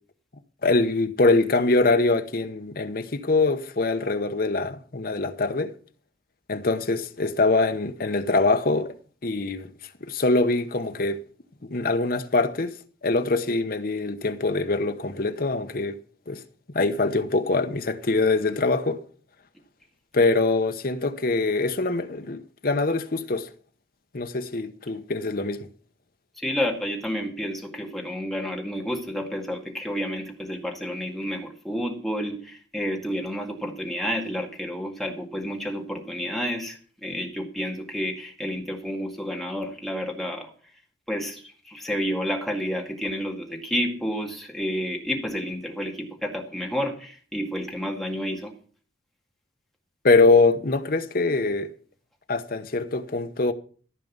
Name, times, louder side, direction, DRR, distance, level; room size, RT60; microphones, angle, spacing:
voice 1, 0.6-5.7 6.5-8.9 9.2-9.7 10.0-11.2 11.6-12.7 13.0-16.0 16.3-16.4 16.7-19.0 20.1-23.5 24.1-25.7 50.0-51.7 52.3-53.5, left 3 dB, 50° left, 0.9 m, -23 dB
voice 2, 26.4-40.5 41.1-48.5, equal, ahead, 2.0 m, -30 dB
14.5 x 5.3 x 7.3 m
head